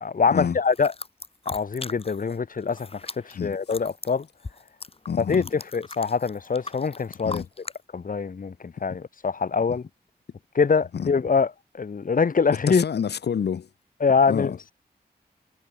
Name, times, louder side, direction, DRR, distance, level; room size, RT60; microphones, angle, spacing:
voice 1, 0.0-0.9 1.5-4.3 5.2-7.4 7.9-9.8 10.5-12.8 14.0-14.7, left 5 dB, 55° left, 2.3 m, -24 dB
sound 1, 0.7-2.4 2.6-7.8, left 3 dB, 35° left, 3.8 m, -39 dB
voice 2, 5.1-5.5 7.2-7.5 10.9-11.1 12.7-13.7 14.3-14.5, left 7 dB, 85° left, 2.6 m, -27 dB
cardioid pair, 75°, 17 cm